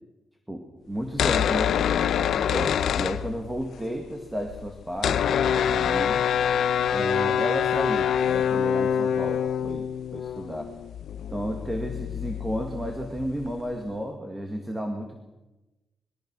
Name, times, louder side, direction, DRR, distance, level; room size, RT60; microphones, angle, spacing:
voice 1, 0.5-6.3 6.9-10.7 11.3-15.2, equal, 10° right, 3 dB, 2.1 m, -33 dB
sound 1, 1.0-3.8 4.0-4.1 4.3-13.7, left 9 dB, 75° left, 0.8 m, -26 dB
sound 2, 4.7-9.4, right 3 dB, 85° right, 7.2 m, -49 dB
26.5 x 22.0 x 6.2 m, 1.0 s
wide cardioid pair, 180°, 0 cm